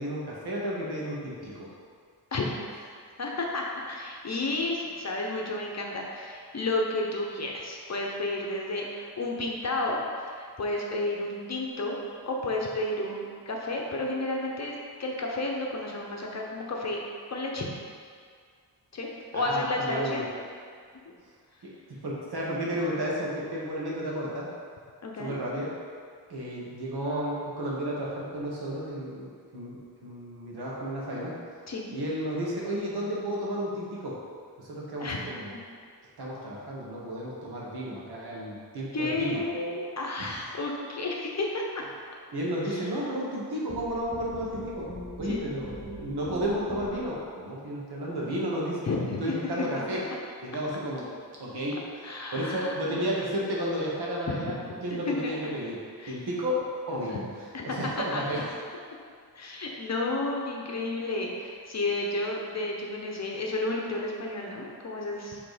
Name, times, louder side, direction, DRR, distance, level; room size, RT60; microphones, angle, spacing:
voice 1, 0.0-1.7 19.3-20.2 22.0-24.5 25.2-25.7 26.3-31.4 31.9-34.2 34.6-35.5 36.2-39.4 40.2-40.5 42.3-44.9 45.2-48.9 49.2-50.0 50.4-51.1 51.4-51.8 52.3-55.8 56.1-57.2 57.6-58.5, equal, 75° right, -5 dB, 1.6 m, -32 dB
voice 2, 3.2-12.0 12.2-17.0 17.3-17.7 18.9-20.3 25.0-25.3 31.7-31.9 35.0-35.2 38.9-41.8 42.6-42.9 45.2-45.4 48.9-49.5 49.9-50.2 52.0-53.1 54.3-54.4 55.1-55.5 56.0-56.2 57.1-57.2 57.5-58.2 59.3-65.4, left 2 dB, 40° left, -1 dB, 0.9 m, -32 dB
sound 1, 43.7-47.2, equal, 10° right, 1.0 m, -40 dB
6.6 x 3.5 x 5.0 m, 2.1 s
wide cardioid pair, 130°, 39 cm